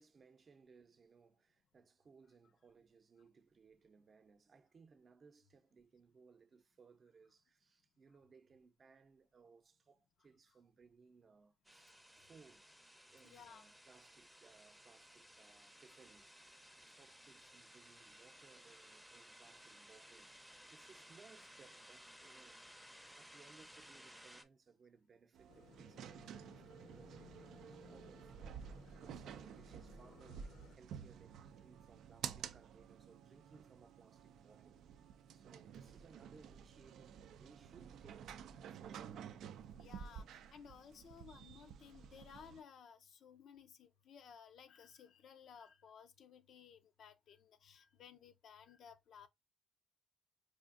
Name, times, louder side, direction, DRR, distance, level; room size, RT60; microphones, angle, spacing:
voice 1, 0.0-12.7 13.1-34.8 35.3-39.4, right 5 dB, 45° right, 0.6 m, -65 dB
sound 1, 11.6-24.4, equal, ahead, 0.6 m, -59 dB
voice 2, 13.2-13.7 39.8-49.3, left 7 dB, 65° left, 0.5 m, -58 dB
sound 2, 25.3-42.6, right 8 dB, 75° right, 0.3 m, -52 dB
sound 3, 25.5-30.8, left 5 dB, 85° left, 1.0 m, -61 dB
4.9 x 2.5 x 2.4 m
cardioid pair, 90°, 0 cm